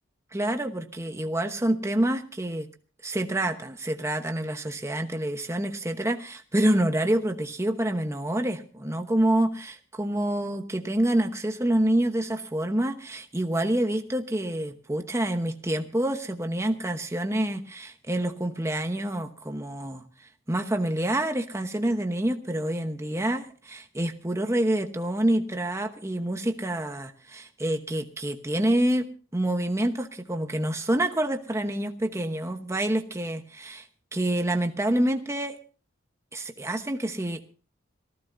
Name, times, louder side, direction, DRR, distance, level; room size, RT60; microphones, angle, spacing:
voice 1, 0.3-2.7 3.0-29.1 29.3-33.9 34.1-35.6 36.3-37.4, right 1 dB, 15° right, 6 dB, 1.0 m, -27 dB
26.0 x 15.0 x 2.7 m, 0.37 s
head